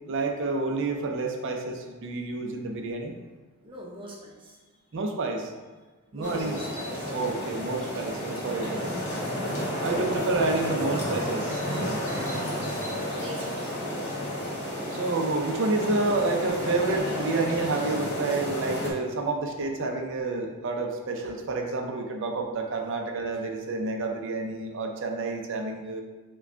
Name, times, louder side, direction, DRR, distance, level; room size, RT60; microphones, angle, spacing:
voice 1, 0.1-3.1 4.9-5.5 6.1-6.6 7.1-8.9 9.8-12.0 14.9-26.0, right 3 dB, 60° right, 3 dB, 0.5 m, -29 dB
voice 2, 3.6-4.6 6.1-7.1 12.0-12.3 12.8-13.7, equal, 25° right, -3 dB, 0.8 m, -42 dB
sound 1, 6.2-18.9, equal, 50° left, 1.3 m, -32 dB
4.7 x 2.3 x 4.4 m, 1.3 s
head